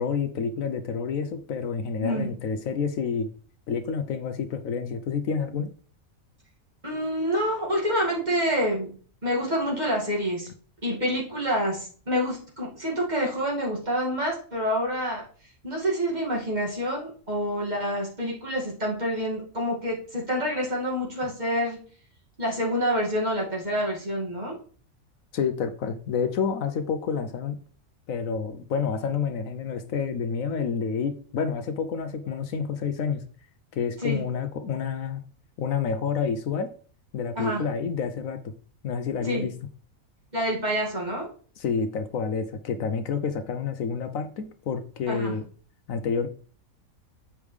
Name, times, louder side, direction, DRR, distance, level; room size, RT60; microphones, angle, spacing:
voice 1, 0.0-3.3 3.7-5.7 25.3-27.6 28.1-33.2 33.7-35.2 35.6-36.7 37.1-38.5 38.8-39.5 41.6-45.4 45.9-46.3, left 6 dB, 75° left, 9 dB, 1.1 m, -29 dB
voice 2, 6.8-9.0 9.2-10.5 10.8-15.2 15.6-21.8 22.4-24.6 34.0-34.2 37.4-37.7 39.2-39.5 40.3-41.3 45.1-45.3, equal, 30° right, -3 dB, 2.2 m, -27 dB
7.2 x 5.2 x 3.2 m, 0.42 s
omnidirectional pair, 1.5 m